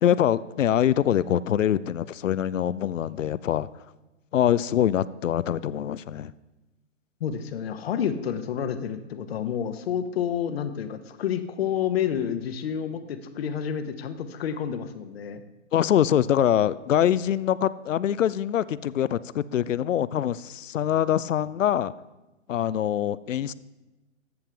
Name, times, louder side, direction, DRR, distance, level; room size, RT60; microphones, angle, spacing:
voice 1, 0.0-3.7 4.3-6.3 15.7-21.9 22.5-23.5, left 10 dB, 75° left, 18 dB, 0.5 m, -24 dB
voice 2, 7.2-15.4, left 8 dB, 50° left, 10 dB, 0.9 m, -29 dB
14.0 x 7.1 x 3.4 m, 1.1 s
hypercardioid pair, 130°, 39 cm